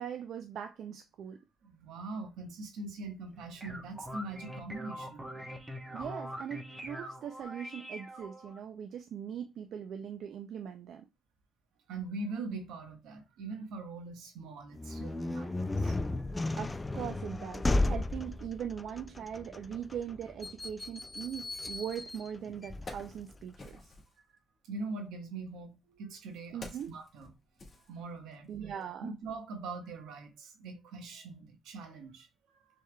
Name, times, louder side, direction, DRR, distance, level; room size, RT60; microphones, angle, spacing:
voice 1, 0.0-1.4 5.9-11.1 16.6-23.9 26.5-26.9 28.5-29.2, right 8 dB, 70° right, 0.5 m, -40 dB
voice 2, 1.6-5.3 11.9-16.0 24.6-27.3 27.9-28.5 29.0-32.7, right 3 dB, 85° right, 1.3 m, -42 dB
sound 1, 3.3-8.6, equal, 15° right, 1.0 m, -43 dB
sound 2, 14.7-23.4, left 2 dB, 20° left, 0.3 m, -35 dB
Wood, 22.0-22.1 22.5-24.2 25.2-28.5 28.8-29.0, left 2 dB, 35° left, 1.7 m, -50 dB
6.4 x 3.5 x 2.3 m
cardioid pair, 90°, 0 cm